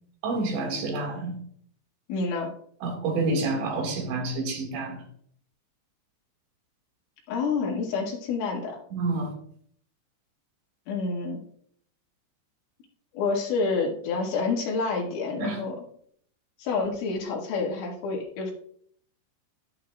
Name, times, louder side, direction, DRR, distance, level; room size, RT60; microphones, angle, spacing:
voice 1, 0.2-1.4 2.8-5.0 8.9-9.3 15.4-15.6, right 3 dB, 70° right, 2 dB, 4.2 m, -28 dB
voice 2, 2.1-2.5 7.3-8.8 10.9-11.4 13.1-15.8 16.6-18.5, left 4 dB, 90° left, -2 dB, 4.7 m, -28 dB
11.5 x 11.5 x 2.4 m, 0.63 s
omnidirectional pair, 5.4 m